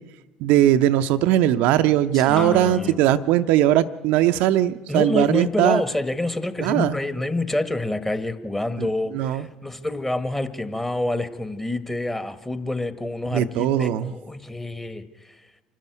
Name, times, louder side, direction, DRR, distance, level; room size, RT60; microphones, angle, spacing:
voice 1, 0.4-5.8 6.6-6.9 8.8-8.9 9.1-9.4 13.3-14.1, right 12 dB, 60° right, 10 dB, 0.6 m, -19 dB
voice 2, 2.1-3.0 4.9-15.4, left 2 dB, 10° left, 11 dB, 1.6 m, -27 dB
sound 1, 2.4-7.0, left 4 dB, 35° left, 4.3 m, -40 dB
26.0 x 12.0 x 9.4 m, 1.1 s
figure-of-eight pair, 60°, 3 cm